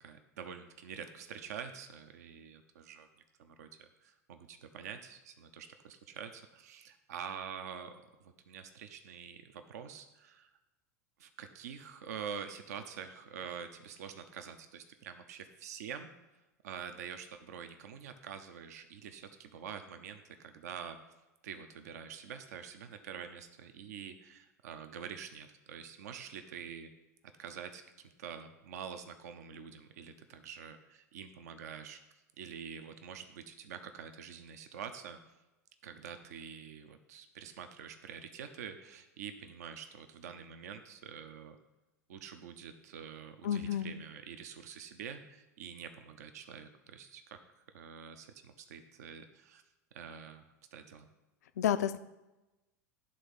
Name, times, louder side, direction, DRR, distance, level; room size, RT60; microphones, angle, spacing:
voice 1, 0.0-3.1 3.4-10.5 11.2-16.1 16.6-21.0 21.4-26.9 27.4-32.0 32.4-35.2 35.8-41.6 42.1-47.4 47.7-49.6 49.9-51.1, right 7 dB, 65° right, 8 dB, 0.7 m, -46 dB
voice 2, 43.4-43.9 51.6-52.0, left 10 dB, 65° left, 12 dB, 0.5 m, -30 dB
11.0 x 3.8 x 5.3 m, 1.0 s
figure-of-eight pair, 85°, 9 cm